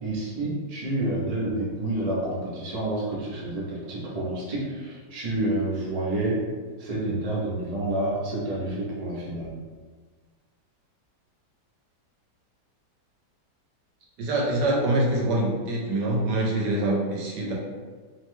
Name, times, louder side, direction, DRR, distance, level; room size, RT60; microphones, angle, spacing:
voice 1, 0.0-6.4 6.8-9.6, right 1 dB, 60° right, -6 dB, 0.4 m, -29 dB
voice 2, 14.2-17.5, right 1 dB, 80° right, -2 dB, 1.2 m, -25 dB
3.0 x 2.1 x 3.1 m, 1.4 s
omnidirectional pair, 1.9 m